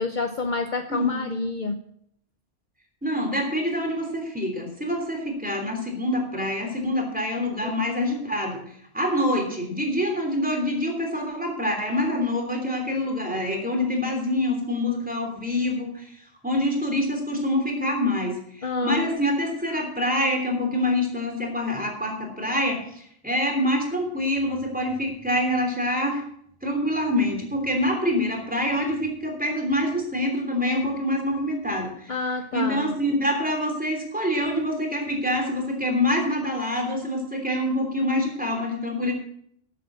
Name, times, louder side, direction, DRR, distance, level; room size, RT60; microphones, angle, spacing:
voice 1, 0.0-1.8 7.6-7.7 18.6-19.1 32.1-32.9, left 3 dB, 50° left, 7 dB, 0.9 m, -28 dB
voice 2, 0.9-1.3 3.0-8.6 8.9-16.1 16.4-26.2 26.6-32.1 32.5-39.1, left 1 dB, 10° right, 1 dB, 3.1 m, -26 dB
13.0 x 8.2 x 6.2 m, 0.68 s
omnidirectional pair, 1.1 m